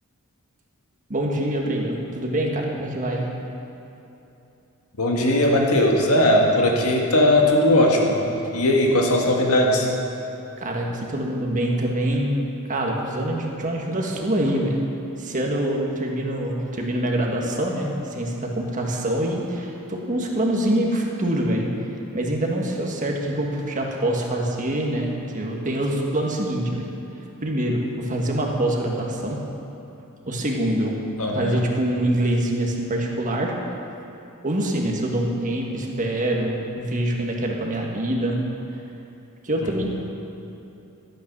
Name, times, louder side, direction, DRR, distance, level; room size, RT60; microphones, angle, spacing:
voice 1, 1.1-3.3 10.6-12.3 12.7-14.8 15.2-21.6 22.1-26.9 27.4-29.4 30.3-31.0 31.3-33.5 34.4-38.4 39.4-40.0, right 1 dB, 35° right, 0 dB, 1.5 m, -25 dB
voice 2, 5.0-8.2 8.5-9.9 31.2-31.6 39.6-39.7, left 1 dB, 80° left, 0 dB, 1.8 m, -19 dB
13.5 x 9.2 x 6.1 m, 2.9 s
head